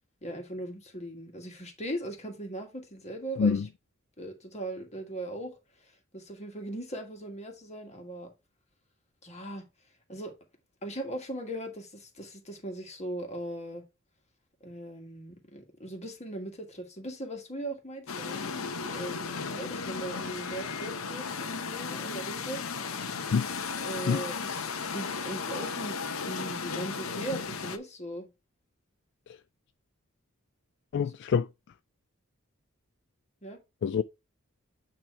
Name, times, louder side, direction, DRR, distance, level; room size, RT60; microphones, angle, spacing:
voice 1, 0.2-3.6 4.2-5.5 5.8-8.3 9.2-9.6 10.1-10.3 10.8-13.8 14.6-22.6 23.9-26.0 26.3-28.3 31.0-31.1 33.4-33.6, right 1 dB, 35° left, 1.7 m, -39 dB
sound 1, 18.1-27.8, left 5 dB, 80° left, 0.7 m, -35 dB
voice 2, 30.9-31.5 33.8-34.0, left 6 dB, 55° left, 0.3 m, -26 dB
8.7 x 3.0 x 4.4 m
head